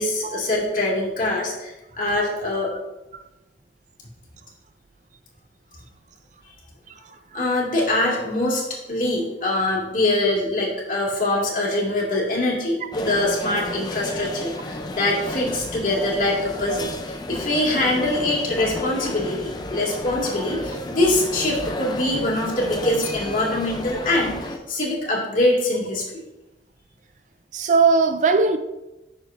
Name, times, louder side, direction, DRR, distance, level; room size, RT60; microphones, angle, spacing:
voice 1, 0.0-2.7 7.3-26.2, left 1 dB, 50° left, 2.2 m, -23 dB
sound 1, 12.9-24.6, left 1 dB, 25° left, 0.5 m, -32 dB
voice 2, 27.5-28.6, right 4 dB, 45° right, 0.4 m, -18 dB
9.7 x 6.4 x 2.6 m
head